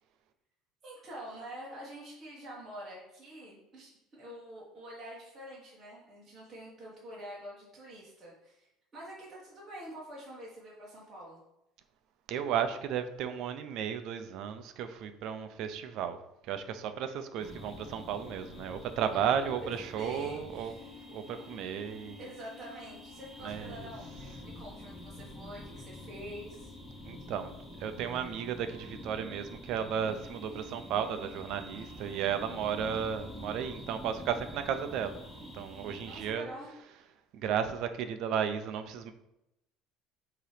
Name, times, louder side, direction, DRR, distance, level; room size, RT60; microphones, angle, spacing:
voice 1, 0.8-11.4 19.1-19.2 19.9-21.0 22.2-26.7 36.0-36.7, equal, 20° right, -7 dB, 1.4 m, -47 dB
voice 2, 12.3-16.2 16.5-20.7 21.1-22.2 23.4-23.7 27.1-27.5 27.8-35.2 35.5-36.5 37.3-39.1, right 8 dB, 50° right, 9 dB, 0.5 m, -34 dB
sound 1, 17.4-36.3, left 1 dB, 5° left, 1.2 m, -47 dB
7.8 x 2.9 x 4.9 m, 0.88 s
cardioid pair, 175°, 0 cm